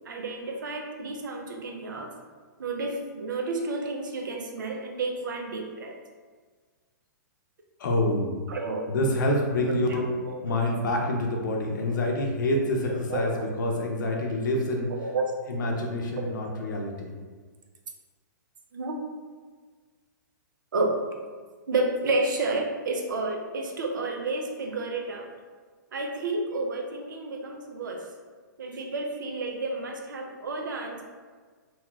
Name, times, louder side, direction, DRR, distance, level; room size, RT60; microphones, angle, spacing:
voice 1, 0.1-2.1 2.6-6.0 8.5-9.0 9.9-10.0 10.3-10.6 13.1-13.2 15.0-15.3 16.2-16.3 18.7-19.0 20.7-21.0 21.7-25.3 25.9-28.0 28.6-31.0, right 2 dB, 80° right, 2 dB, 0.5 m, -30 dB
voice 2, 7.8-8.3 8.9-10.1 10.4-14.9 15.5-17.1, left 1 dB, 70° left, 1 dB, 0.6 m, -27 dB
3.0 x 2.2 x 3.0 m, 1.5 s
hypercardioid pair, 130°, 10 cm